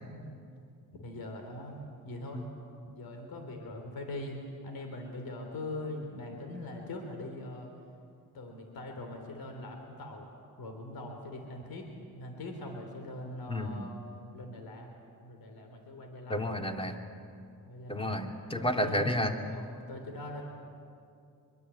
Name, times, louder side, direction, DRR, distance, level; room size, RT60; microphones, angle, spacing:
voice 1, 0.1-0.4 1.0-2.4 2.9-4.4 4.6-7.7 8.3-10.3 10.6-11.9 12.1-13.9 14.3-14.9 15.2-16.5 17.6-18.2 18.5-19.0 19.4-20.4, left 2 dB, 65° left, 4 dB, 3.7 m, -42 dB
voice 2, 13.5-13.8 16.3-17.0 17.9-19.3, equal, 15° left, 4 dB, 2.6 m, -31 dB
24.5 x 22.0 x 8.5 m, 2.5 s
supercardioid pair, 60°, 39 cm